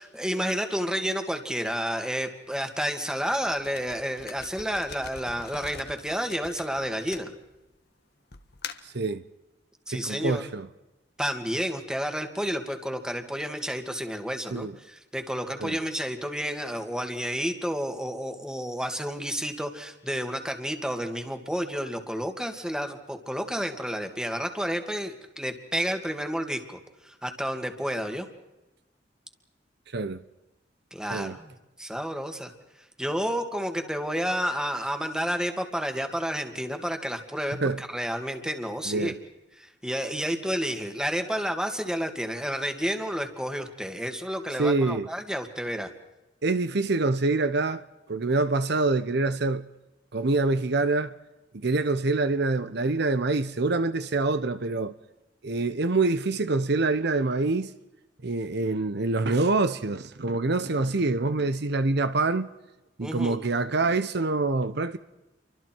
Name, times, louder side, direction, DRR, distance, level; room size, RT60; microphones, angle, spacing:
voice 1, 0.0-7.3 9.9-10.5 11.2-26.8 27.0-28.3 30.9-32.5 33.0-39.2 39.6-45.9 63.0-63.4, equal, 5° right, 2.3 m, -30 dB
sound 1, 3.4-7.8 8.3-9.0, left 6 dB, 60° left, 1.5 m, -43 dB
voice 2, 8.8-9.2 9.9-10.7 14.5-14.8 15.6-15.8 29.9-30.2 31.1-31.4 37.5-37.8 38.9-39.2 44.6-45.1 46.4-47.8 48.1-49.7 50.1-51.1 51.5-54.9 55.4-57.7 58.2-62.5 63.0-65.0, right 3 dB, 65° right, 0.9 m, -25 dB
29.5 x 24.5 x 4.6 m
head